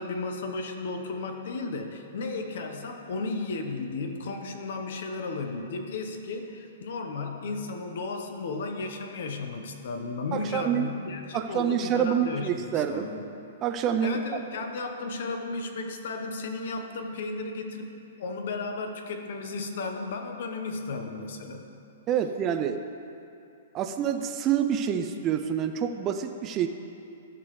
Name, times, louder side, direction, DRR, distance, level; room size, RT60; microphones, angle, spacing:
voice 1, 0.0-13.2 14.0-17.9 18.2-21.7, left 3 dB, 65° left, 5 dB, 1.0 m, -34 dB
voice 2, 10.3-10.9 11.3-13.1 13.6-14.2 22.1-22.8 23.7-26.7, right 9 dB, 30° right, 6 dB, 0.4 m, -27 dB
14.0 x 6.0 x 3.2 m, 2.6 s
hypercardioid pair, 130°, 0 cm